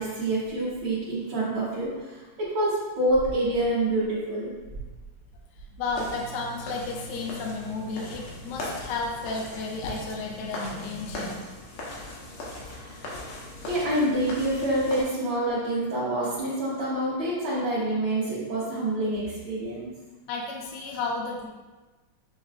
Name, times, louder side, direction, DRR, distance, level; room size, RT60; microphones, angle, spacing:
voice 1, 0.0-4.5 12.5-13.0 13.7-19.9, right 1 dB, 65° right, -11 dB, 1.9 m, -27 dB
voice 2, 5.7-11.5 20.3-21.5, left 3 dB, 75° left, 0 dB, 1.0 m, -33 dB
sound 1, 5.9-15.0, left 1 dB, 90° left, 1.9 m, -39 dB
7.2 x 3.1 x 2.4 m, 1.2 s
omnidirectional pair, 2.4 m